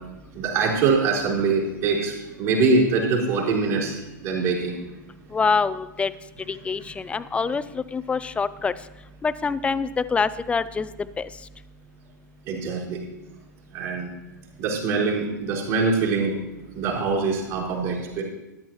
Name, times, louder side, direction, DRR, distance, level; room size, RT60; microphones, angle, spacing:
voice 1, 0.3-4.8 12.5-13.0 13.7-14.1 14.6-16.4 16.7-18.2, right 4 dB, 50° right, -5 dB, 4.3 m, -23 dB
voice 2, 5.3-6.1 6.5-8.7 9.2-10.9 11.2-11.3, left 5 dB, 10° left, 16 dB, 0.4 m, -25 dB
13.5 x 10.5 x 3.0 m, 1.0 s
hypercardioid pair, 100°, 10 cm